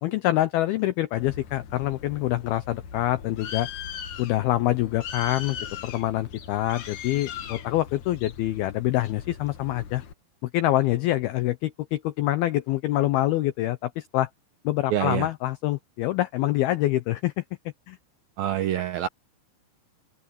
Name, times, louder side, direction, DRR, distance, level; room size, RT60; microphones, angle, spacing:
voice 1, 0.0-3.7 4.2-5.6 5.8-10.0 10.5-14.3 14.6-17.4 17.9-18.0, left 15 dB, 85° left, 2.2 m, -25 dB
Bird, 1.2-10.1, left 8 dB, 55° left, 2.4 m, -39 dB
voice 2, 14.9-15.3 18.4-19.1, right 11 dB, 80° right, 2.1 m, -26 dB
open air
omnidirectional pair, 5.4 m